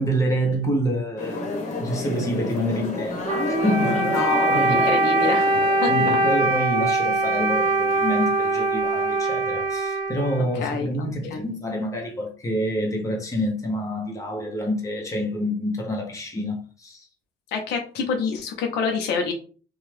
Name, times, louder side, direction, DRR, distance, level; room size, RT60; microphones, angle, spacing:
voice 1, 0.0-1.5 1.8-5.0 5.9-17.0, equal, 20° left, 1.0 m, -27 dB
sound 1, 1.2-6.6, left 2 dB, 45° left, 1.2 m, -30 dB
Wind instrument woodwind instrument, 3.2-10.8, right 2 dB, 35° right, 1.0 m, -22 dB
voice 2, 4.0-5.9 10.6-10.9 11.3-11.5 17.5-19.3, left 5 dB, 80° left, 0.7 m, -27 dB
2.7 x 2.3 x 3.2 m
cardioid pair, 110°, 17 cm